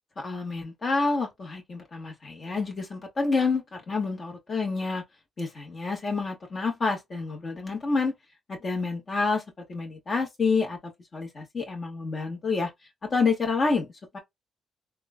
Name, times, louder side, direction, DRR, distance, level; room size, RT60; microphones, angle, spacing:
voice 1, 0.2-5.0 5.4-8.1 8.5-9.4 9.7-12.7 13.0-13.9 14.1-14.2, left 4 dB, 45° left, 1.6 m, -28 dB
3.6 x 2.5 x 2.2 m
cardioid pair, 75°, 0 cm